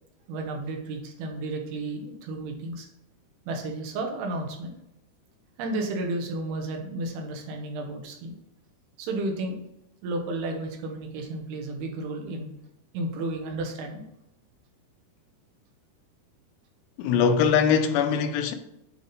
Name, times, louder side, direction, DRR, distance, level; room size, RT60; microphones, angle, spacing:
voice 1, 0.3-2.9 3.5-4.7 5.6-8.3 9.0-9.6 10.0-12.5 12.9-14.1, right 2 dB, 75° right, 3.0 m, -32 dB
voice 2, 17.0-18.5, left 6 dB, 85° left, 2.8 m, -22 dB
8.4 x 3.5 x 3.8 m
omnidirectional pair, 4.8 m